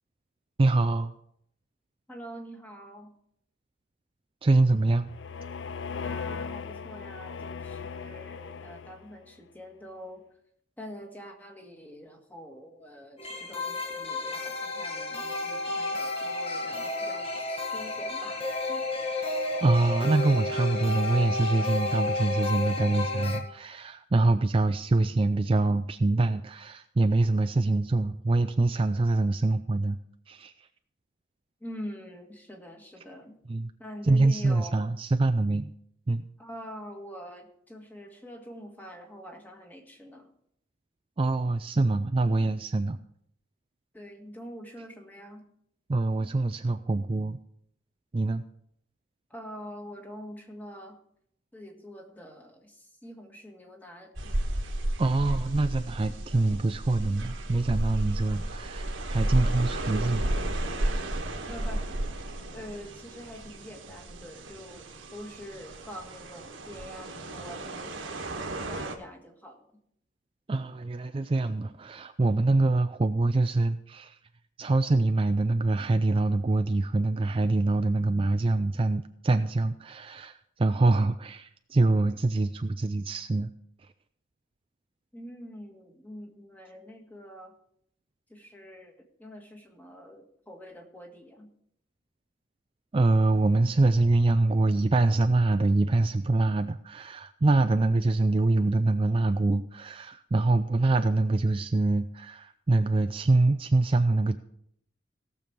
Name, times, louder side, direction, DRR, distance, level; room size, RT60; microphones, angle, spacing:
voice 1, 0.6-1.1 4.4-5.1 19.6-30.0 30.3-30.7 33.5-33.7 34.0-35.7 36.1-36.2 41.2-43.0 45.9-47.4 48.1-48.4 55.0-60.2 70.5-74.2 74.6-83.5 92.9-104.4, right 2 dB, 30° right, 9 dB, 0.4 m, -25 dB
voice 2, 2.1-3.1 6.0-10.2 10.8-18.8 31.6-33.4 33.8-34.9 36.4-40.3 43.9-45.5 49.3-51.0 51.5-54.3 61.5-61.9 62.5-68.1 68.6-69.7 85.1-87.5 88.3-88.9 89.2-91.5, equal, 10° left, 2 dB, 1.7 m, -45 dB
sound 1, 4.6-9.3, left 5 dB, 65° left, 0.5 m, -38 dB
sound 2, 13.2-23.4, left 2 dB, 30° left, 1.7 m, -31 dB
sound 3, 54.2-69.0, right 1 dB, 80° right, 1.6 m, -33 dB
17.0 x 6.9 x 4.6 m, 0.70 s
head